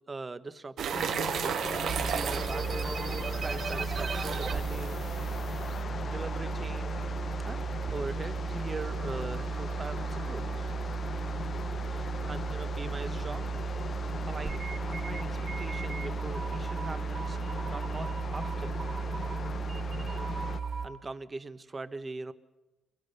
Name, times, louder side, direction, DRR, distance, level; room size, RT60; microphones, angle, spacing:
voice 1, 0.1-1.2 1.8-3.1 3.4-5.1 5.6-7.0 7.5-7.6 7.9-10.7 11.8-13.5 14.0-14.6 14.9-17.4 17.6-18.7 20.8-22.3, right 3 dB, 30° right, 12 dB, 1.2 m, -41 dB
sound 1, 0.8-5.8, right 8 dB, 65° right, 1.0 m, -35 dB
sound 2, 0.9-20.6, left 6 dB, 45° left, 0.8 m, -39 dB
sound 3, 1.9-20.9, right 5 dB, 50° right, 3.1 m, -34 dB
23.5 x 22.5 x 6.8 m, 1.1 s
cardioid pair, 90°, 0 cm